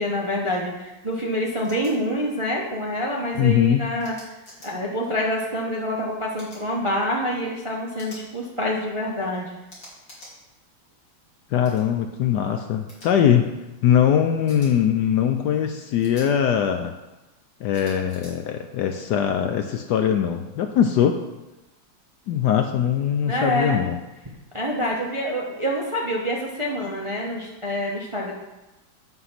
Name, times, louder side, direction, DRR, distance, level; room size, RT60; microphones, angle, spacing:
voice 1, 0.0-4.1 4.6-9.5 23.3-23.8 24.5-28.3, equal, 25° right, -2 dB, 0.6 m, -26 dB
sound 1, 1.6-1.9 4.0-4.7 6.4-6.6 8.0-8.2 9.7-10.3 11.6-11.8 12.9-13.1 14.5-14.7 16.0-16.3 17.7-18.3, left 1 dB, 45° left, 3.2 m, -45 dB
voice 2, 3.4-3.8 11.5-13.5 13.8-16.9 17.6-21.2 22.3-24.0, left 9 dB, 75° left, 6 dB, 1.0 m, -21 dB
7.8 x 5.7 x 5.8 m, 1.0 s
omnidirectional pair, 2.2 m